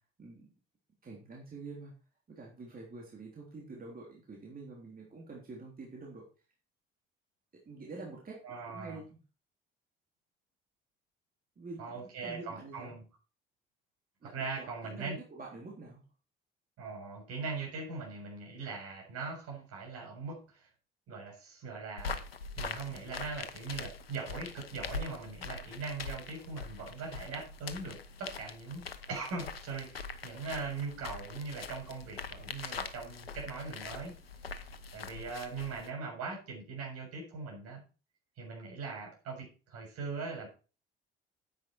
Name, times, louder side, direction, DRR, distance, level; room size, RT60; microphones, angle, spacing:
voice 1, 1.0-1.9 2.3-6.3 7.7-8.4 8.7-9.2 11.6-13.0 14.2-16.0, right 3 dB, 30° right, -2 dB, 3.7 m, -47 dB
voice 2, 8.4-9.0 11.8-13.0 14.2-15.2 16.8-20.7 21.1-22.2 22.6-34.1 34.9-37.8 38.4-40.5, right 4 dB, 55° right, -1 dB, 7.1 m, -41 dB
sound 1, 22.0-35.9, left 5 dB, 80° left, 0.9 m, -43 dB
9.9 x 9.0 x 4.6 m, 0.35 s
figure-of-eight pair, 55°, 29 cm